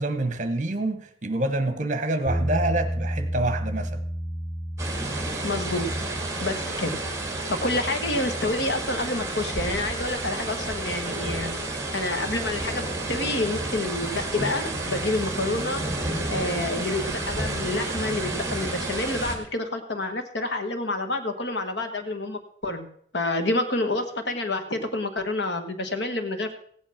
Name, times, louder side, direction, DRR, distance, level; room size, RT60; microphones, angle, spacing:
voice 1, 0.0-4.0, right 2 dB, 40° right, 1.2 m, -27 dB
sound 1, 2.3-8.5, equal, 5° left, 2.8 m, -32 dB
sound 2, 4.8-19.4, right 2 dB, 15° right, 2.0 m, -31 dB
voice 2, 5.4-5.8 6.4-6.9 7.5-11.5 11.9-15.8 16.3-22.9 23.1-26.6, left 2 dB, 65° left, 1.5 m, -28 dB
15.5 x 8.6 x 5.9 m
head